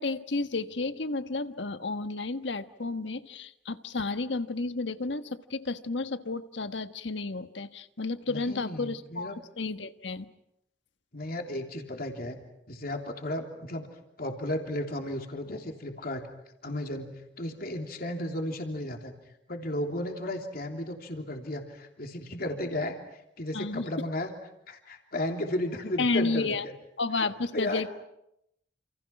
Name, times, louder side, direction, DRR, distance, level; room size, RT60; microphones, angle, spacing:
voice 1, 0.0-10.3 23.5-23.9 26.0-26.6 27.0-27.9, left 3 dB, 80° left, 10 dB, 1.4 m, -32 dB
voice 2, 8.3-9.4 11.1-12.4 12.7-13.9 14.2-16.2 16.6-17.1 17.4-19.1 19.5-23.0 23.4-24.3 24.7-26.7 27.2-27.3 27.5-27.8, left 1 dB, 55° left, 3 dB, 3.3 m, -34 dB
29.0 x 28.5 x 6.0 m, 0.80 s
head